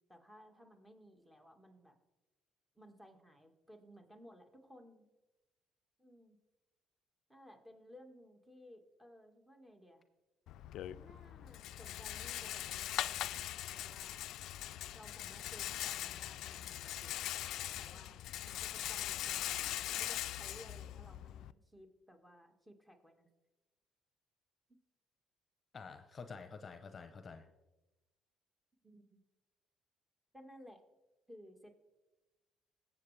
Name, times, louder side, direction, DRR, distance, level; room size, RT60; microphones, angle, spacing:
voice 1, 0.1-1.9 2.7-5.1 6.0-6.4 7.3-10.0 10.9-13.4 13.7-14.2 14.9-17.3 17.8-19.5 19.9-23.3 28.8-29.2 30.3-30.8 31.3-31.7, equal, 10° right, 5 dB, 1.8 m, -58 dB
Rattle, 10.5-21.5, left 13 dB, 75° left, 0.3 m, -41 dB
voice 2, 25.7-27.5, left 5 dB, 35° left, 8 dB, 0.8 m, -49 dB
17.5 x 7.5 x 3.4 m, 1.1 s
supercardioid pair, 75°, 0 cm